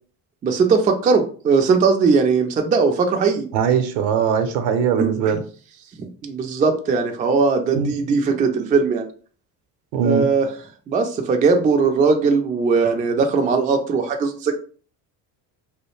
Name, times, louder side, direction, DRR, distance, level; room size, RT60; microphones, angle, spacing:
voice 1, 0.4-3.5 5.0-5.1 6.2-9.0 10.0-10.5 10.9-14.5, right 4 dB, 20° right, 4 dB, 0.3 m, -19 dB
voice 2, 3.5-5.4 7.7-7.9 9.9-10.3, right 7 dB, 70° right, 7 dB, 0.7 m, -20 dB
2.2 x 2.1 x 3.1 m, 0.42 s
hypercardioid pair, 70°, 49 cm